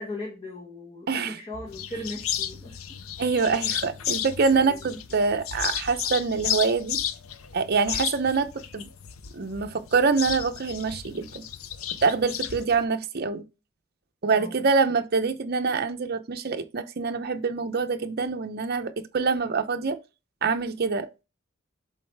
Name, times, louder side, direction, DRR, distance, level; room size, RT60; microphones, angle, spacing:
voice 1, 0.0-2.8 4.5-5.0 14.3-14.6, left 1 dB, 25° left, 1.5 m, -38 dB
sound 1, 1.7-12.9, left 9 dB, 85° left, 0.6 m, -33 dB
voice 2, 3.2-7.0 7.5-8.5 8.7-8.9 9.3-11.4 12.0-13.4 14.2-20.0 20.4-21.1, right 4 dB, 50° right, 0.6 m, -25 dB
7.5 x 3.9 x 3.4 m
head